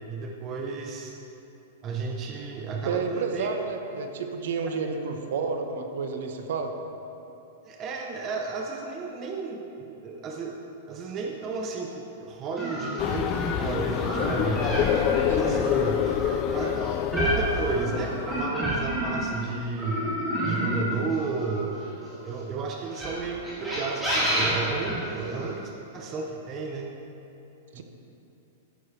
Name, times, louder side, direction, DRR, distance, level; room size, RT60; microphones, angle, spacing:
voice 1, 0.1-1.2 1.8-3.5 4.7-4.8 7.6-10.6 10.9-14.9 15.3-16.0 16.5-16.8 17.1-20.1 20.4-21.8 22.2-26.9 27.7-27.8, right 4 dB, 20° right, 0 dB, 0.7 m, -33 dB
voice 2, 2.9-6.7 15.3-15.6 27.7-27.8, right 5 dB, 60° right, 5 dB, 1.0 m, -30 dB
sound 1, 12.6-19.4 19.8-22.2 22.9-25.5, equal, 5° right, 2.7 m, -30 dB
sound 2, 13.0-18.5, left 9 dB, 25° left, 0.3 m, -27 dB
14.0 x 10.5 x 3.3 m, 2.9 s
supercardioid pair, 180°, 0 cm